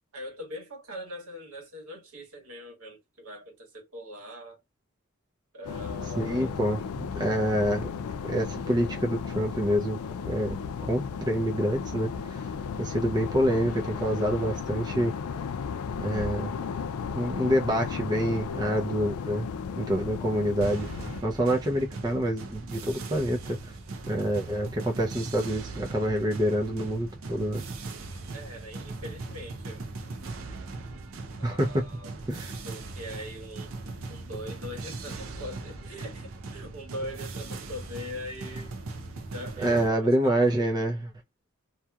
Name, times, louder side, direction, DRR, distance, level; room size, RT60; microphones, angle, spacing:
voice 1, 0.1-4.6 5.5-6.5 28.3-29.8 31.4-32.1 32.6-33.7 34.1-38.7 39.3-40.9, left 1 dB, 80° right, 1.3 m, -41 dB
sound 1, 5.6-21.2, left 6 dB, 85° left, 0.4 m, -35 dB
voice 2, 6.2-7.9 8.2-10.0 10.3-10.6 10.8-12.4 12.8-15.1 16.0-16.5 17.1-19.5 19.8-20.9 21.2-23.7 24.1-27.6 31.4-31.8 32.3-32.5 39.6-41.0, equal, 20° right, 0.5 m, -27 dB
sound 2, 20.6-39.9, right 3 dB, 65° right, 0.5 m, -39 dB
2.8 x 2.2 x 2.3 m
head